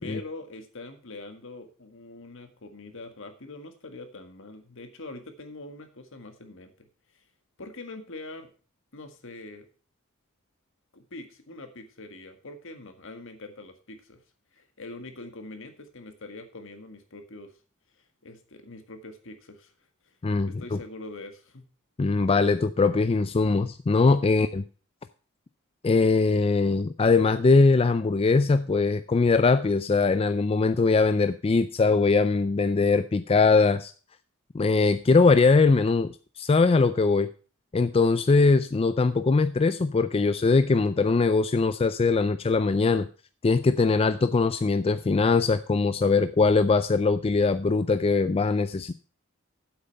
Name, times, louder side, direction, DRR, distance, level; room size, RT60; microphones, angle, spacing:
voice 1, 0.0-7.2 7.6-8.5 8.9-9.7 10.9-14.2 14.5-17.5 17.9-19.7 20.0-20.1 20.4-21.6 24.3-24.4, left 2 dB, 65° left, 7 dB, 1.8 m, -43 dB
voice 2, 20.2-20.8 22.0-24.6 25.8-33.9 34.5-37.3 37.7-43.1 43.4-48.9, left 4 dB, 30° left, 12 dB, 0.4 m, -21 dB
9.1 x 7.9 x 5.2 m, 0.37 s
head